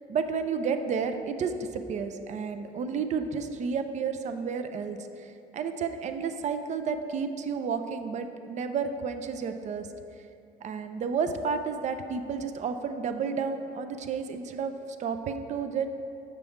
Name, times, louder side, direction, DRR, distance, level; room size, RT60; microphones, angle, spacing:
voice 1, 0.1-9.9 10.6-15.9, right 5 dB, 45° right, 8 dB, 0.5 m, -31 dB
7.9 x 5.9 x 3.6 m, 2.7 s
cardioid pair, 110°, 17 cm